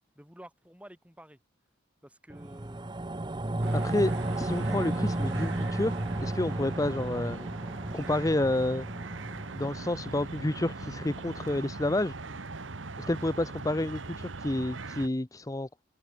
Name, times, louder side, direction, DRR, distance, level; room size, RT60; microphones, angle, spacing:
voice 1, 0.2-1.4 2.0-2.9, equal, 5° right, 5.3 m, -50 dB
sound 1, 2.3-12.9 13.3-13.4, right 1 dB, 25° right, 0.8 m, -34 dB
sound 2, 3.6-15.1, right 3 dB, 80° right, 1.4 m, -41 dB
voice 2, 3.7-5.9 6.2-7.5 7.9-8.9 9.5-12.1 13.0-15.7, left 1 dB, 20° left, 0.6 m, -29 dB
head